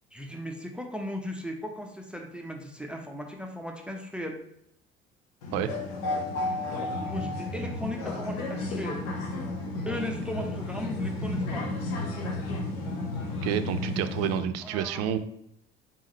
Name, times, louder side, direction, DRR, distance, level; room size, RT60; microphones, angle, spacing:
voice 1, 0.1-4.4 6.7-9.0 9.9-11.6 14.6-15.1, left 1 dB, 5° right, 3 dB, 0.7 m, -36 dB
sound 1, 5.4-14.4, left 2 dB, 70° left, 1.0 m, -32 dB
voice 2, 13.4-15.2, right 9 dB, 60° right, 11 dB, 0.5 m, -29 dB
4.4 x 3.6 x 3.2 m, 0.74 s
hypercardioid pair, 60°, 29 cm